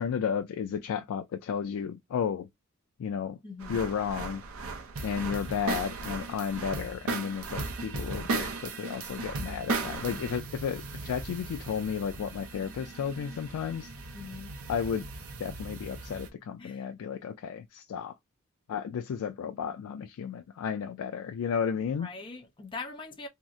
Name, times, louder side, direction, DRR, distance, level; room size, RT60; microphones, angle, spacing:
voice 1, 0.0-2.5 3.0-3.4 3.7-4.4 5.0-13.9 14.7-15.1 15.4-18.2 18.7-22.1, left 7 dB, 80° left, 0.3 m, -33 dB
voice 2, 3.4-3.8 14.1-14.5 16.6-16.9 22.0-23.3, left 4 dB, 25° left, 0.6 m, -42 dB
sound 1, 3.6-16.3, right 3 dB, 75° right, 0.6 m, -37 dB
2.7 x 2.0 x 3.5 m
head